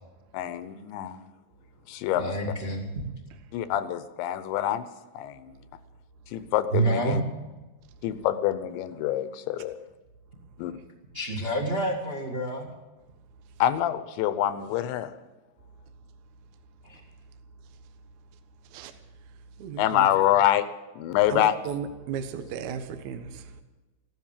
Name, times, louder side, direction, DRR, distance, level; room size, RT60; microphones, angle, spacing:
voice 1, 0.3-1.2 1.9-2.3 3.5-4.9 5.1-5.6 6.3-7.2 8.0-9.8 10.6-10.7 13.6-15.1 19.8-20.7 21.0-21.5, left 11 dB, 90° left, 3.2 m, -26 dB
voice 2, 2.1-3.0 6.7-7.2 11.1-12.7 16.8-17.0, right 2 dB, 35° right, 0.9 m, -28 dB
voice 3, 19.6-20.1 21.3-23.6, right 7 dB, 70° right, 1.9 m, -35 dB
15.5 x 12.5 x 7.4 m
omnidirectional pair, 5.1 m